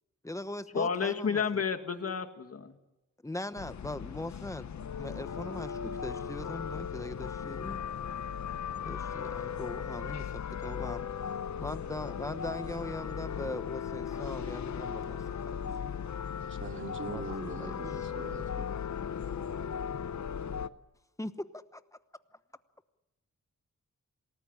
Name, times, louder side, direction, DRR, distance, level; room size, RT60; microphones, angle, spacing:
voice 1, 0.2-1.6 3.2-7.9 8.9-11.1 11.6-15.5 17.1-18.1 21.2-21.8, left 1 dB, 10° left, 12 dB, 1.0 m, -41 dB
voice 2, 0.7-2.8, left 6 dB, 55° left, 7 dB, 2.1 m, -31 dB
sound 1, 3.6-20.7, left 7 dB, 70° left, 0.8 m, -37 dB
voice 3, 16.5-18.7, right 3 dB, 40° right, 4 dB, 2.8 m, -42 dB
27.0 x 19.0 x 10.0 m, 1.0 s
wide cardioid pair, 155°, 29 cm